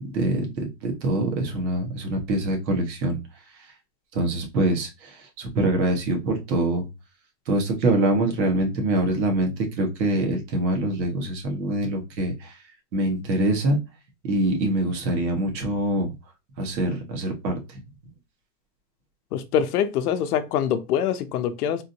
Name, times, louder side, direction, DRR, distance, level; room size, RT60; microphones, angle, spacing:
voice 1, 0.1-3.2 4.1-6.9 7.5-12.5 12.9-13.8 14.2-16.1 16.6-17.6, right 1 dB, 90° right, 1.6 m, -24 dB
voice 2, 19.3-21.8, left 9 dB, 65° left, 0.7 m, -24 dB
3.7 x 2.6 x 2.8 m
supercardioid pair, 160°, 50 cm